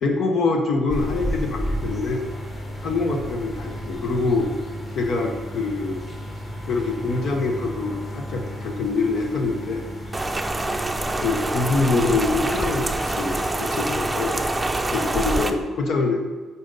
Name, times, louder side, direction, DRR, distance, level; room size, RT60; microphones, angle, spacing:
voice 1, 0.0-2.3 2.8-4.5 4.9-6.1 6.7-9.9 11.2-14.4 14.9-16.2, left 3 dB, 65° left, 3 dB, 0.9 m, -24 dB
sound 1, 0.9-15.4, equal, 25° left, 2.0 m, -33 dB
Rain, 10.1-15.5, right 2 dB, 15° right, 0.6 m, -26 dB
8.8 x 4.2 x 4.1 m, 1.4 s
cardioid pair, 90°, 0 cm